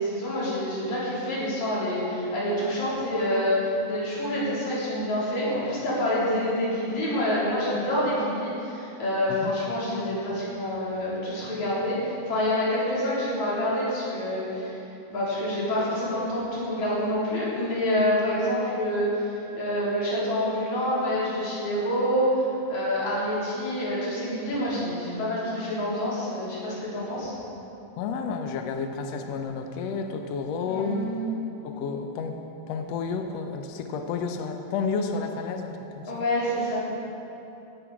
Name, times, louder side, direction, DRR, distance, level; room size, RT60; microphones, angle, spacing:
voice 1, 0.0-14.8 15.1-22.4 22.7-27.3 30.7-31.3 36.1-36.8, left 1 dB, 55° left, -8 dB, 5.1 m, -27 dB
voice 2, 28.0-31.1 31.6-32.4 32.7-36.2, left 5 dB, 80° left, 5 dB, 1.5 m, -31 dB
17.0 x 12.0 x 4.9 m, 2.9 s
omnidirectional pair, 4.1 m